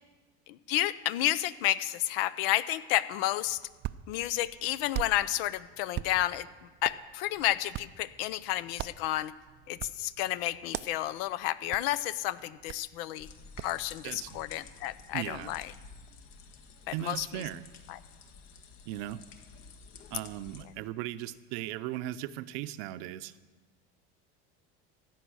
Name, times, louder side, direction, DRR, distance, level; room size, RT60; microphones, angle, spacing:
voice 1, 0.7-3.6 4.1-6.5 6.8-9.3 9.7-13.3 13.6-15.7 17.0-17.3, left 14 dB, 75° left, 17 dB, 0.7 m, -31 dB
Hands, 3.4-13.8, right 14 dB, 35° right, 0.4 m, -43 dB
sound 1, 13.2-20.6, left 5 dB, 60° left, 1.8 m, -51 dB
voice 2, 14.0-14.4 15.1-15.5 16.9-17.7 18.9-19.2 20.1-23.4, right 14 dB, 70° right, 14 dB, 0.7 m, -37 dB
15.0 x 9.2 x 6.3 m, 1.3 s
supercardioid pair, 115°, 29 cm